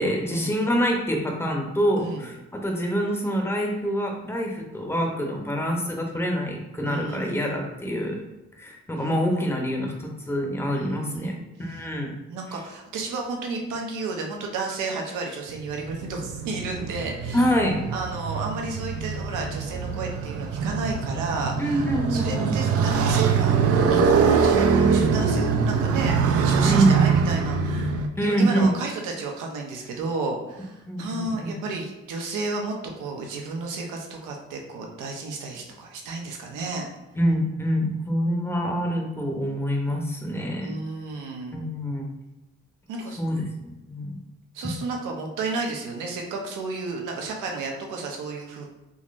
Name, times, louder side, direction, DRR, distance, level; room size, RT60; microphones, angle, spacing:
voice 1, 0.0-8.2 8.6-12.1 17.3-17.9 21.6-22.5 26.6-27.0 28.2-28.7 30.9-31.5 37.2-40.7 41.5-42.1 43.2-44.2, equal, 10° left, 1 dB, 0.7 m, -26 dB
voice 2, 2.0-2.3 6.9-7.3 10.7-11.4 12.3-17.5 17.9-36.9 40.6-41.6 42.9-43.2 44.5-48.7, right 3 dB, 90° right, 1 dB, 0.8 m, -32 dB
Motorcycle, 15.5-28.1, right 5 dB, 50° right, 0.4 m, -23 dB
3.8 x 3.0 x 2.5 m, 1.0 s
cardioid pair, 90°, 30 cm